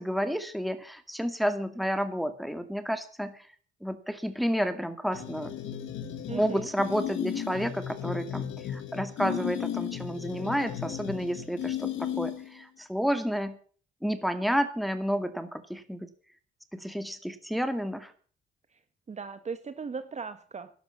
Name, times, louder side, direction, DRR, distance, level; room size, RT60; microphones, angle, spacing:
voice 1, 0.0-3.5 3.8-5.5 6.3-13.6 14.0-16.1 16.7-18.1, equal, ahead, 9 dB, 2.1 m, -30 dB
sound 1, 5.1-12.6, left 10 dB, 75° left, 1.8 m, -35 dB
voice 2, 6.3-6.7 18.7-18.8 19.1-20.7, right 5 dB, 35° right, 10 dB, 1.3 m, -38 dB
12.5 x 11.5 x 7.3 m, 0.43 s
cardioid pair, 90°, 20 cm